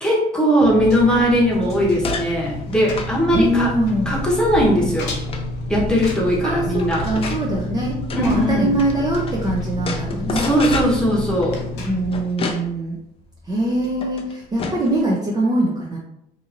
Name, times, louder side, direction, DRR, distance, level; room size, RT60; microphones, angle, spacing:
voice 1, 0.0-3.7 4.1-5.1 5.7-7.0 8.1-8.7 10.3-11.6, equal, 5° left, -4 dB, 0.9 m, -19 dB
Engine, 0.6-12.2, left 1 dB, 85° left, 0.6 m, -29 dB
sound 1, 1.5-9.4 9.8-15.0, left 4 dB, 35° left, 0.4 m, -33 dB
voice 2, 3.3-4.2 6.4-10.6 11.8-13.0 13.4-16.0, right 1 dB, 25° right, -3 dB, 0.5 m, -22 dB
2.8 x 2.6 x 2.5 m, 0.80 s
cardioid pair, 110°, 17 cm